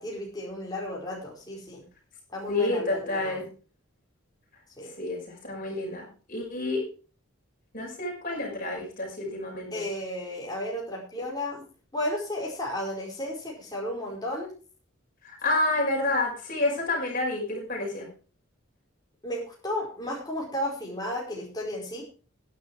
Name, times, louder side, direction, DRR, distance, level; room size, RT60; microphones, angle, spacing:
voice 1, 0.0-1.8 2.3-3.4 4.8-4.9 9.7-11.6 11.9-14.5 19.2-22.0, left 1 dB, 20° left, -4 dB, 4.9 m, -33 dB
voice 2, 2.5-3.4 5.0-6.9 7.7-9.8 15.2-18.1, left 2 dB, 40° left, -2 dB, 5.8 m, -29 dB
11.5 x 10.5 x 4.7 m, 0.37 s
head